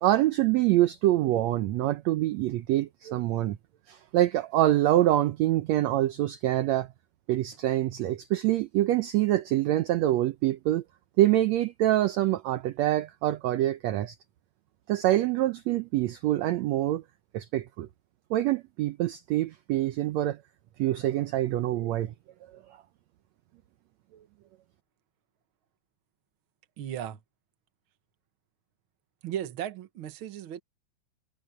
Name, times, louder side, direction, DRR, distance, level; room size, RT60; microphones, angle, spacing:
voice 1, 0.0-3.6 3.9-6.9 7.3-10.8 11.2-14.2 14.9-17.0 17.3-17.9 18.3-20.4 20.8-22.1, right 14 dB, 75° right, 1.7 m, -25 dB
voice 2, 26.8-27.2 29.2-30.6, right 10 dB, 55° right, 1.6 m, -36 dB
omnidirectional pair, 3.8 m